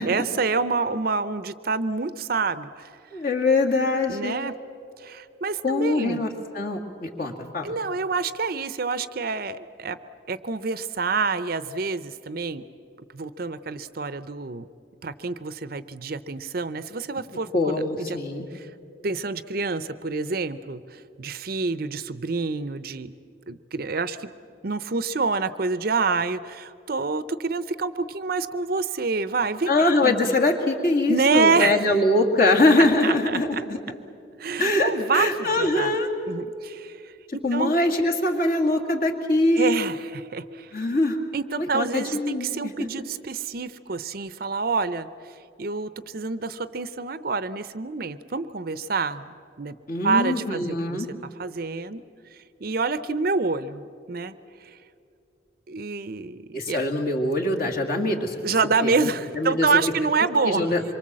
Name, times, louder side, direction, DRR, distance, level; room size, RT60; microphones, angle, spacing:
voice 1, 0.0-2.9 4.1-4.5 5.0-6.2 7.6-10.0 10.3-12.6 13.1-14.7 15.0-18.2 18.5-18.7 19.0-23.1 23.5-24.3 24.6-30.1 31.1-31.9 33.0-33.6 34.4-35.9 36.3-37.7 39.6-40.8 41.3-49.3 49.6-49.7 50.0-51.1 51.4-52.0 52.3-54.3 54.6-54.8 55.7-56.8 58.4-60.7, right 4 dB, 50° right, 14 dB, 0.6 m, -27 dB
voice 2, 3.1-4.3 5.6-7.7 17.5-18.5 29.7-33.8 34.6-36.1 37.3-39.7 40.7-41.2 41.6-42.9 49.9-51.1 56.5-58.4 58.8-59.0 59.3-59.7 60.4-60.8, left 2 dB, 50° left, 1 dB, 2.2 m, -23 dB
25.5 x 23.5 x 7.5 m, 2.6 s
head